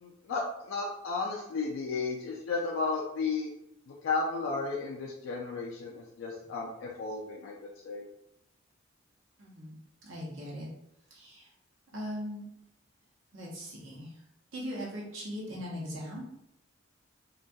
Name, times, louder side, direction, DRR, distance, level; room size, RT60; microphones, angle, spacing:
voice 1, 0.0-3.5 3.9-7.5 7.8-8.1, left 4 dB, 75° left, -1 dB, 0.3 m, -33 dB
voice 2, 9.4-10.7 11.1-11.5 11.9-12.4 13.3-14.1 14.5-16.2, equal, 80° right, -4 dB, 0.8 m, -40 dB
2.2 x 2.2 x 2.6 m, 0.80 s
head